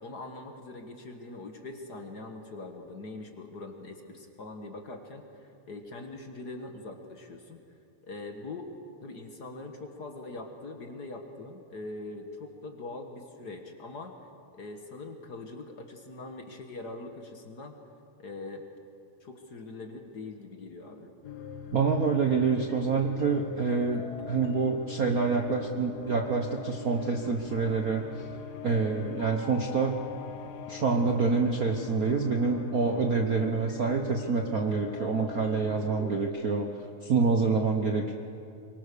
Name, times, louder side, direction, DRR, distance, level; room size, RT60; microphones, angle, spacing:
voice 1, 0.0-7.6 8.1-8.7 9.0-14.1 14.5-17.8 18.2-18.6 19.2-21.1, left 2 dB, 45° left, 5 dB, 1.6 m, -42 dB
sound 1, 21.2-36.2, left 7 dB, 75° left, 0.9 m, -42 dB
voice 2, 21.7-28.2 28.6-30.0 30.7-36.7 37.0-38.1, right 4 dB, 90° right, 3 dB, 0.7 m, -27 dB
24.0 x 23.5 x 6.8 m, 2.5 s
omnidirectional pair, 3.4 m